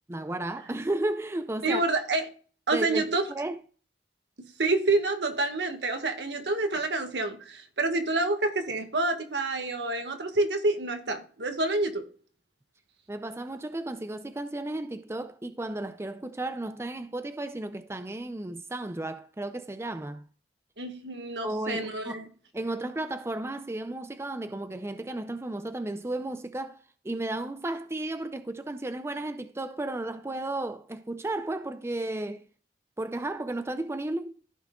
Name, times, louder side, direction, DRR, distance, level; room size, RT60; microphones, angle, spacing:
voice 1, 0.1-1.8 2.7-3.6 13.1-20.2 21.4-22.2 22.5-26.8 27.0-32.4 33.0-34.4, right 2 dB, 15° right, 0.5 m, -33 dB
voice 2, 1.6-2.3 2.7-3.3 4.6-12.0 20.8-22.3, right 2 dB, 75° right, 1.6 m, -28 dB
15.0 x 6.0 x 2.3 m
head